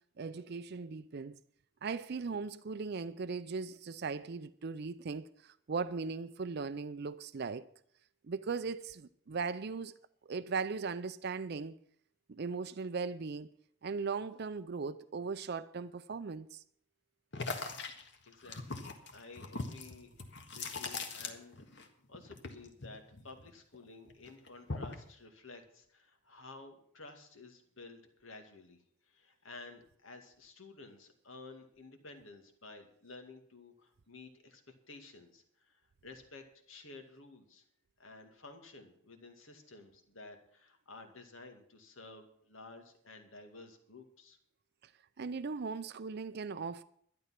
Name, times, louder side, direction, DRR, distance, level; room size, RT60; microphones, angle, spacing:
voice 1, 0.2-1.4 1.8-7.7 8.2-9.9 10.3-11.8 12.3-13.5 13.8-16.6 44.8-44.9 45.2-46.8, right 4 dB, 55° right, 0.5 m, -38 dB
sound 1, 17.3-21.9 22.1-23.8 24.1-25.1, left 3 dB, 60° left, 1.7 m, -41 dB
voice 2, 18.3-21.7 22.1-28.8 29.1-34.6 34.9-37.6 38.0-44.4, left 3 dB, 80° left, 2.2 m, -53 dB
12.0 x 11.0 x 5.9 m
head